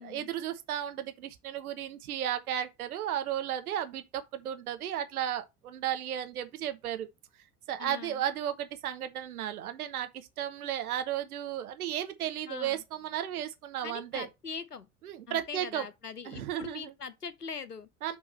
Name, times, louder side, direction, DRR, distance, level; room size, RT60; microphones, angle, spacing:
voice 1, 0.0-7.1 7.7-14.3 15.0-15.8 16.3-16.9 18.0-18.2, right 11 dB, 70° right, 1.1 m, -34 dB
voice 2, 7.8-8.2 12.5-12.8 13.8-14.9 15.3-17.9, left 5 dB, 90° left, 0.8 m, -42 dB
6.9 x 3.8 x 5.4 m
figure-of-eight pair, 65°, 45 cm